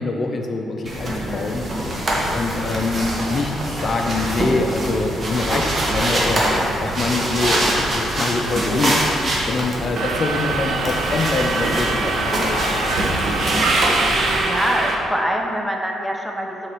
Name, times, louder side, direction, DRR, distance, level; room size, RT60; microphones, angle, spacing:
voice 1, 0.0-1.7 2.3-3.5 3.8-6.4 6.8-9.0 9.5-12.3 12.8-12.9 13.6-13.7, left 3 dB, 45° left, 2 dB, 0.5 m, -24 dB
sound 1, 0.9-14.4, right 1 dB, 40° right, 1.3 m, -24 dB
voice 2, 1.1-1.6 14.4-16.7, equal, 5° right, 1 dB, 0.7 m, -25 dB
Subway metro underground, 10.0-14.9, right 2 dB, 65° right, 0.9 m, -22 dB
7.1 x 3.9 x 4.6 m, 2.8 s
cardioid pair, 90°, 0 cm